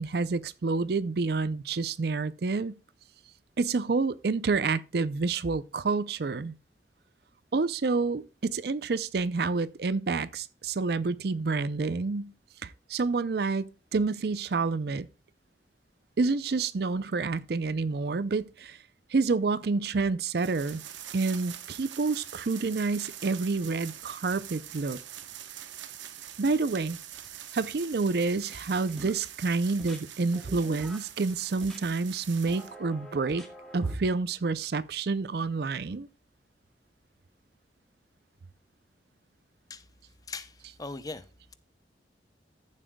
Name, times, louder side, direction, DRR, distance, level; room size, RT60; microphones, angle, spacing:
voice 1, 0.0-2.8 3.6-6.5 7.5-12.3 12.6-15.1 16.2-18.8 19.1-20.8 21.1-25.0 26.4-27.0 27.5-33.4 33.7-36.1, right 4 dB, 55° right, 0.5 m, -28 dB
sound 1, 20.4-32.7, right 11 dB, 85° right, 1.0 m, -44 dB
sound 2, 27.0-27.5 27.8-29.3 29.8-30.0 30.3-31.1 31.6-31.8 32.5-34.0, equal, ahead, 2.1 m, -47 dB
voice 2, 40.2-41.5, left 3 dB, 20° left, 0.6 m, -41 dB
14.5 x 7.4 x 2.2 m
head